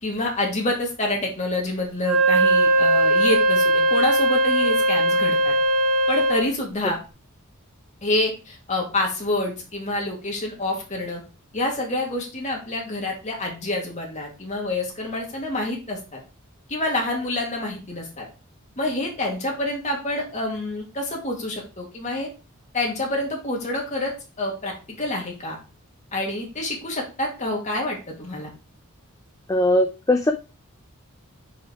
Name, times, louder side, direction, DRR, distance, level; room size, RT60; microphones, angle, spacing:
voice 1, 0.0-5.6 6.1-7.0 8.0-11.2 11.5-16.2 16.7-18.3 18.8-22.3 22.7-25.6 26.1-28.5, left 2 dB, 35° left, 0 dB, 2.1 m, -27 dB
Wind instrument woodwind instrument, 2.0-6.5, right 1 dB, 70° right, 1.3 m, -19 dB
voice 2, 29.5-30.3, left 1 dB, 15° left, 6 dB, 0.4 m, -19 dB
5.2 x 4.7 x 4.6 m, 0.32 s
head